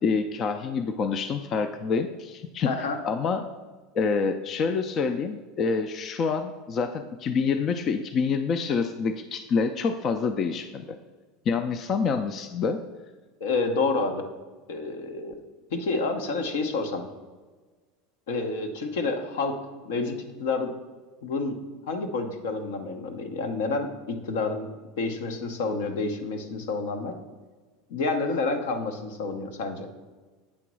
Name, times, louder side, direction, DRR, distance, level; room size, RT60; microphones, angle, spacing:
voice 1, 0.0-2.7 3.0-3.5 3.9-10.8 11.5-12.8, left 5 dB, 40° left, 9 dB, 0.4 m, -27 dB
voice 2, 2.7-3.0 13.4-14.2 14.7-15.4 15.7-17.0 18.3-19.6 19.8-20.7 21.2-21.6 21.9-24.7 25.0-27.1 27.9-29.9, left 3 dB, 80° left, 5 dB, 0.9 m, -29 dB
8.4 x 3.0 x 6.1 m, 1.3 s
supercardioid pair, 125°, 0 cm